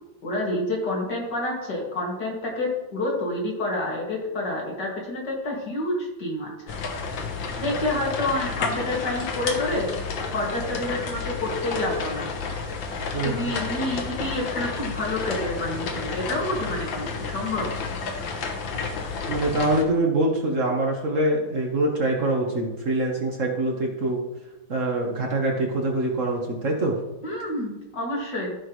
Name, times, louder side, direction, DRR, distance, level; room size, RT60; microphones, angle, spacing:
voice 1, 0.2-6.5 7.6-9.9 10.3-12.3 13.2-17.7 27.2-28.6, left 1 dB, 65° left, -2 dB, 2.8 m, -28 dB
sound 1, 6.7-19.8, left 4 dB, 80° left, 1.8 m, -31 dB
voice 2, 13.1-13.5 19.3-24.2 24.7-27.0, right 2 dB, 45° right, 0 dB, 1.5 m, -24 dB
14.0 x 6.0 x 3.1 m, 1.0 s
omnidirectional pair, 2.0 m